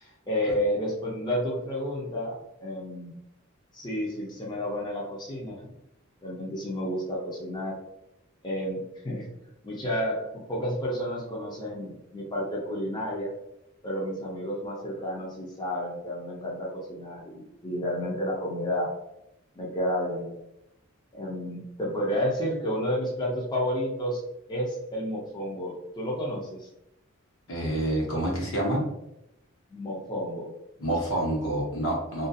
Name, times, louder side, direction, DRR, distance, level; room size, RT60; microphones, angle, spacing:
voice 1, 0.3-3.2 3.7-5.7 6.2-7.8 8.4-9.3 9.6-13.3 13.8-18.9 19.6-20.3 21.1-24.2 24.5-26.7 29.7-30.5, equal, 20° left, -4 dB, 0.5 m, -31 dB
voice 2, 27.5-28.8 30.8-32.3, right 1 dB, 70° left, -2 dB, 0.9 m, -27 dB
2.4 x 2.3 x 2.6 m, 0.86 s
head